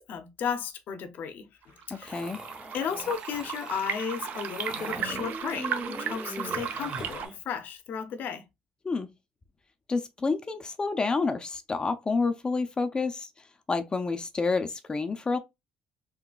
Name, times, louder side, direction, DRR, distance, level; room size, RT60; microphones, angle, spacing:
voice 1, 0.1-2.2 2.7-8.4, left 7 dB, 65° left, 0.7 m, -34 dB
sound 1, 1.6-7.3, right 8 dB, 60° right, 0.5 m, -35 dB
voice 2, 2.0-2.4 8.8-9.1 9.9-13.3 13.7-15.4, left 4 dB, 25° left, 0.5 m, -29 dB
sound 2, 2.1-7.4, right 1 dB, 25° right, 0.7 m, -40 dB
3.7 x 2.2 x 2.3 m
cardioid pair, 90°, 3 cm